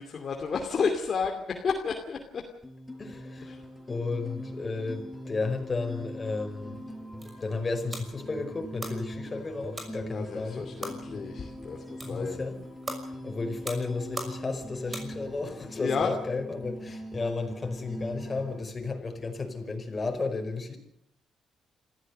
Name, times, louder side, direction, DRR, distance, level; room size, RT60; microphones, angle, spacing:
voice 1, 0.0-2.4 3.4-3.6 10.1-12.4 15.8-16.1, left 5 dB, 50° left, 2.7 m, -31 dB
sound 1, 2.6-18.6, equal, 10° left, 5.7 m, -42 dB
voice 2, 3.0-3.5 3.9-6.8 7.4-10.7 11.1-11.2 12.0-12.6 13.2-20.8, left 3 dB, 30° left, 5.0 m, -33 dB
sound 2, 6.9-15.5, right 2 dB, 25° right, 6.0 m, -43 dB
26.5 x 15.0 x 6.7 m
cardioid pair, 90°, 0 cm